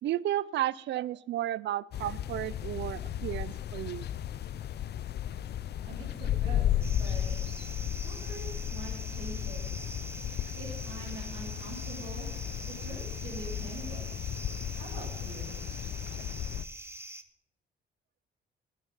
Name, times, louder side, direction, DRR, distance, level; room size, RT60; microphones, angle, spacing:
voice 1, 0.0-4.1, right 13 dB, 65° right, 21 dB, 0.4 m, -33 dB
sound 1, 1.9-16.6, left 11 dB, 55° left, 0.5 m, -34 dB
voice 2, 5.8-6.7 7.0-7.4 8.0-9.8 10.3-12.3 12.7-14.2 14.8-15.6, right 3 dB, 85° right, -7 dB, 3.7 m, -45 dB
sound 2, 6.8-17.2, right 2 dB, 10° right, 1.0 m, -45 dB
13.0 x 9.5 x 5.5 m, 0.79 s
cardioid pair, 90°, 20 cm